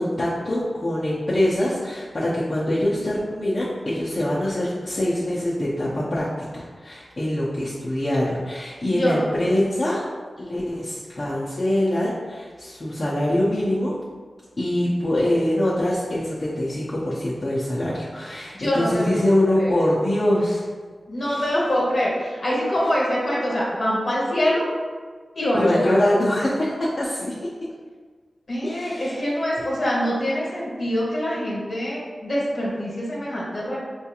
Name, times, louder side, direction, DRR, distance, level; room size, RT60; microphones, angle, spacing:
voice 1, 0.0-6.3 6.5-10.0 10.4-13.9 14.6-20.6 21.3-21.6 25.5-27.5 28.6-29.2, left 1 dB, 40° left, -8 dB, 0.7 m, -24 dB
voice 2, 8.9-9.3 18.5-19.7 21.1-24.7 25.3-26.2 28.5-33.8, equal, 65° left, -6 dB, 1.1 m, -24 dB
4.3 x 2.4 x 2.9 m, 1.5 s
cardioid pair, 60°, 0 cm